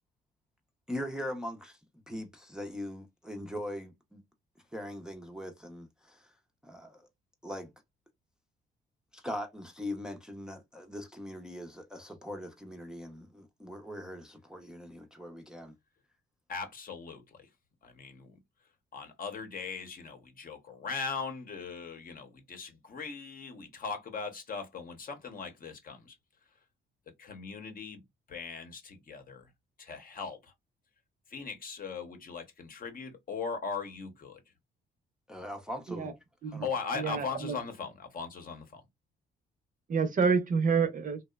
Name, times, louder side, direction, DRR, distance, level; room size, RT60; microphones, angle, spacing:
voice 1, 0.9-1.8 2.1-4.2 4.7-6.3 6.6-7.1 7.4-7.7 9.1-15.7 35.3-36.2 36.5-36.7, left 1 dB, 5° right, 0.5 m, -41 dB
voice 2, 16.5-17.5 17.8-18.4 18.9-26.1 27.2-28.0 28.3-29.5 29.8-30.5 31.3-34.4 36.6-38.8, left 5 dB, 45° left, 0.8 m, -39 dB
voice 3, 36.9-37.6 39.9-41.3, right 5 dB, 45° right, 0.6 m, -28 dB
2.8 x 2.0 x 2.2 m
cardioid pair, 90°, 20 cm